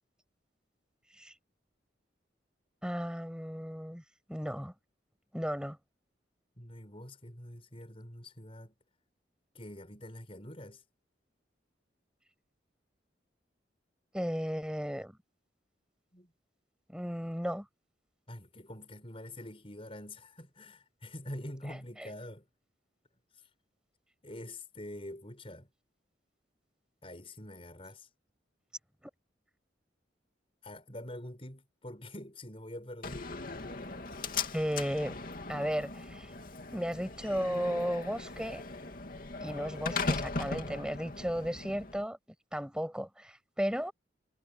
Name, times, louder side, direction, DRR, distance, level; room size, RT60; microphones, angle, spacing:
voice 1, 2.8-4.0 4.3-4.7 5.3-5.8 14.1-15.1 16.9-17.7 21.7-22.1 34.5-35.2 35.5-36.3 36.7-38.6 39.4-42.2 42.5-43.9, equal, 5° right, 7.1 m, -34 dB
voice 2, 6.6-8.7 9.5-10.8 16.1-16.3 18.3-22.4 24.2-25.7 27.0-28.1 30.6-33.3, left 1 dB, 30° left, 7.2 m, -45 dB
Slam, 33.0-42.0, left 3 dB, 50° left, 2.6 m, -38 dB
head